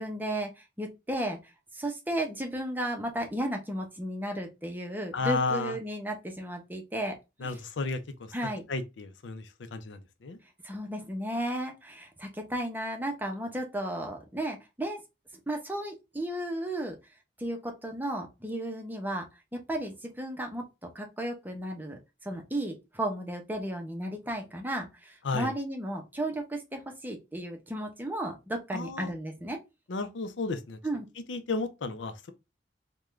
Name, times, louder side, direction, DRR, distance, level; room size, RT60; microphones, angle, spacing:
voice 1, 0.0-1.4 1.7-7.6 8.3-8.6 10.6-15.0 15.5-17.0 17.4-19.3 19.7-20.6 20.9-29.6 30.8-31.1, right 1 dB, 10° right, 0.7 m, -34 dB
voice 2, 5.1-5.8 7.4-8.3 8.7-10.4 25.2-25.5 28.7-29.1 29.9-30.8 31.3-32.3, left 3 dB, 85° left, 0.5 m, -33 dB
3.6 x 2.2 x 3.1 m
head